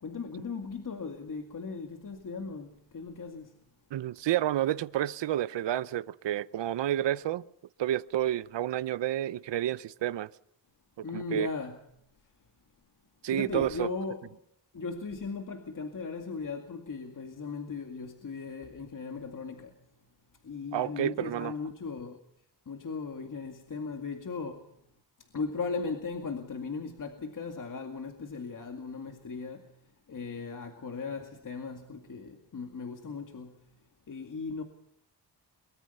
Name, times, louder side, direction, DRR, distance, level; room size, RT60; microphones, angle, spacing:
voice 1, 0.0-3.6 11.0-11.8 13.3-14.2 14.7-19.8 20.4-22.2 22.7-24.7 25.3-29.8 30.1-33.6 34.1-34.6, left 4 dB, 45° left, 2.3 m, -37 dB
voice 2, 3.9-7.4 7.8-10.3 11.1-11.5 13.2-13.9 20.7-21.5, right 12 dB, 80° right, 0.8 m, -30 dB
23.5 x 22.5 x 5.5 m
wide cardioid pair, 120°, 42 cm